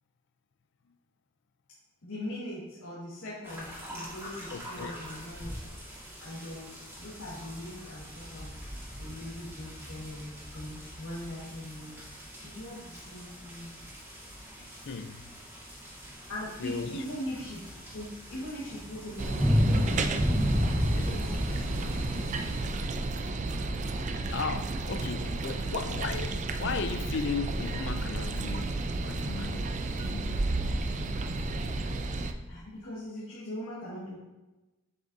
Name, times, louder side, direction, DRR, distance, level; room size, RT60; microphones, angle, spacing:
voice 1, 2.0-5.6 6.2-8.5 9.0-12.0 12.4-13.7 16.3-17.6 17.9-22.1 32.5-34.2, left 1 dB, 75° left, 1.6 m, -41 dB
sound 1, 3.4-22.6, equal, 10° right, 1.7 m, -35 dB
voice 2, 4.5-5.0 14.9-15.3 16.6-17.0 20.7-21.2 24.3-28.8 29.0-29.7 30.0-30.4, left 5 dB, 55° left, 0.4 m, -36 dB
sound 2, 19.2-32.3, right 2 dB, 35° right, 0.4 m, -32 dB
7.7 x 6.0 x 2.6 m
head